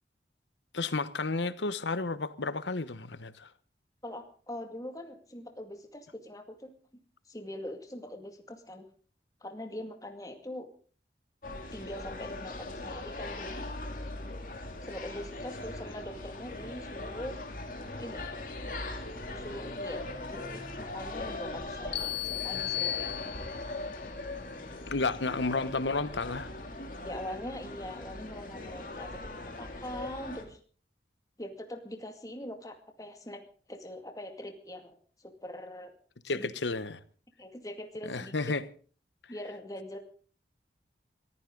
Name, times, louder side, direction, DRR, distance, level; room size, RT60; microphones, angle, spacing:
voice 1, 0.7-3.5 24.9-26.5 36.2-37.0 38.1-38.6, left 3 dB, 85° left, 1.1 m, -32 dB
voice 2, 4.0-6.7 7.3-8.9 9.4-10.7 11.7-13.6 14.8-17.4 18.0-18.4 19.3-20.0 20.3-23.5 27.0-30.6 31.4-33.4 33.7-35.9 36.3-36.5 37.4-38.5 39.3-40.0, left 1 dB, 20° left, 2.3 m, -42 dB
sound 1, 11.4-30.4, left 2 dB, 50° left, 2.9 m, -40 dB
sound 2, 21.9-23.8, left 13 dB, 70° left, 2.2 m, -34 dB
22.0 x 15.0 x 3.9 m
head